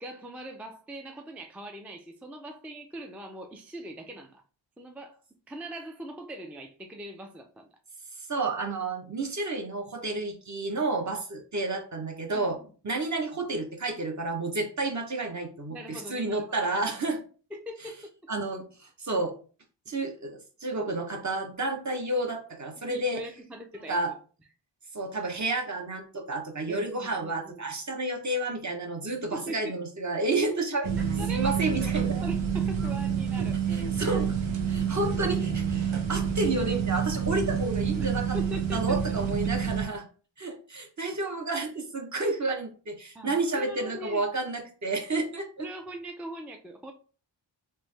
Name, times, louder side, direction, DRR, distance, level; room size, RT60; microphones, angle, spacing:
voice 1, 0.0-4.4 4.8-5.2 5.5-7.7 12.3-12.7 15.7-16.5 17.5-18.3 22.9-24.1 26.7-27.6 29.3-29.8 31.0-31.5 31.8-31.9 32.2-33.6 38.0-39.0 43.1-44.3 45.6-46.9, equal, 5° right, 4 dB, 0.3 m, -41 dB
voice 2, 8.3-12.6 12.8-17.2 18.3-19.3 19.9-23.2 23.9-24.1 24.9-30.9 31.3-32.2 33.7-34.4 34.7-38.4 38.7-40.1 40.4-45.7, right 2 dB, 40° right, 3 dB, 0.8 m, -30 dB
sound 1, 30.8-39.9, right 7 dB, 90° right, 0.7 m, -28 dB
3.2 x 2.1 x 3.2 m, 0.37 s
wide cardioid pair, 50°, 45 cm